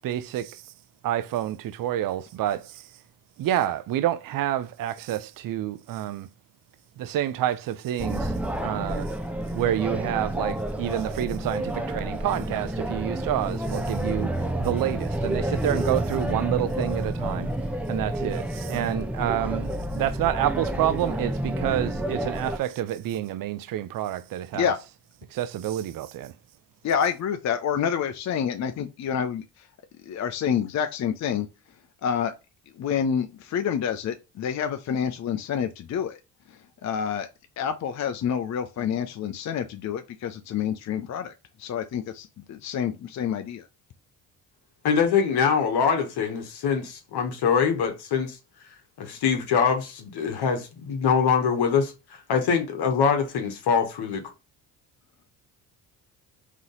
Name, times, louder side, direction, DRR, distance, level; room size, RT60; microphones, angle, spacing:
voice 1, 0.0-0.6 1.0-2.8 3.4-6.3 7.0-8.3 8.6-9.1 9.5-17.5 17.9-24.7 25.3-26.3, right 12 dB, 50° right, 0.6 m, -28 dB
sound 1, 8.0-22.6, right 1 dB, 5° right, 0.7 m, -29 dB
voice 2, 26.8-29.7 30.0-31.5 32.0-32.3 32.7-36.2 36.5-37.3 37.6-41.3 41.6-43.7, left 8 dB, 40° left, 0.6 m, -28 dB
voice 3, 44.8-48.4 49.0-54.2, left 6 dB, 60° left, 1.2 m, -24 dB
3.8 x 3.1 x 3.8 m
hypercardioid pair, 55°, 45 cm